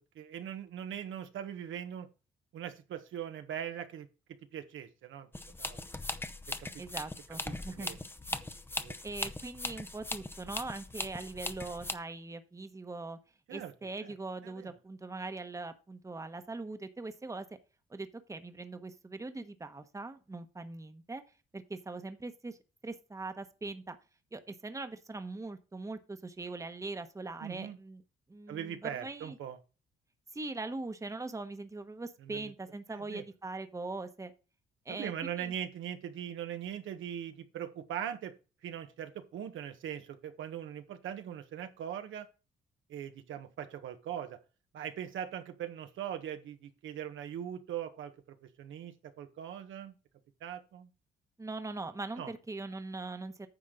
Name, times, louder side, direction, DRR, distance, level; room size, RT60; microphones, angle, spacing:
voice 1, 0.1-2.1 2.5-4.1 4.5-5.3 5.6-6.0 6.6-6.8 7.4-8.0 8.8-8.9 13.5-13.7 14.0-14.1 14.4-14.7 27.4-27.8 28.5-29.6 32.2-32.5 32.9-33.2 34.9-38.3 38.6-42.3 42.9-44.4 44.7-48.1 48.4-49.9 50.4-50.9 52.2-52.3, right 9 dB, 75° right, 7 dB, 1.3 m, -41 dB
sound 1, 5.3-11.9, left 2 dB, 10° left, 0.7 m, -40 dB
voice 2, 6.8-8.0 9.0-13.2 13.5-17.5 17.9-21.2 21.5-22.6 22.8-24.0 24.3-28.0 28.3-29.4 30.3-34.3 34.8-35.5 51.4-53.5, right 3 dB, 15° right, 9 dB, 1.1 m, -41 dB
9.9 x 6.5 x 3.8 m, 0.32 s
cardioid pair, 90°, 20 cm